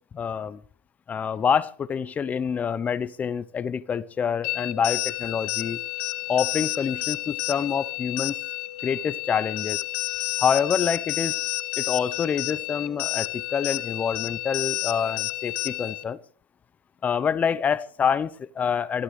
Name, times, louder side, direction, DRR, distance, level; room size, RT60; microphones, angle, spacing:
voice 1, 0.1-0.6 1.1-5.8 6.3-8.4 8.8-9.8 10.4-11.4 11.8-16.2 17.0-19.0, left 7 dB, 25° left, 0.8 m, -26 dB
sound 1, 4.4-16.0, left 19 dB, 65° left, 0.9 m, -30 dB
24.5 x 14.5 x 3.3 m
hypercardioid pair, 105°, 6 cm